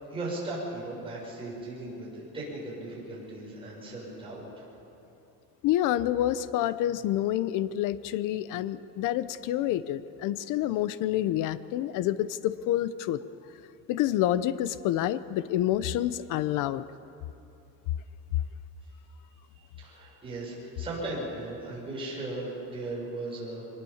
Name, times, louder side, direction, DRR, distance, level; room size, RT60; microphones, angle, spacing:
voice 1, 0.1-4.6 19.5-23.7, right 2 dB, 15° right, -5 dB, 6.7 m, -37 dB
voice 2, 5.6-13.2 13.9-16.8, left 12 dB, 65° left, 15 dB, 0.8 m, -28 dB
24.0 x 19.5 x 7.3 m, 2.9 s
cardioid pair, 160°, 34 cm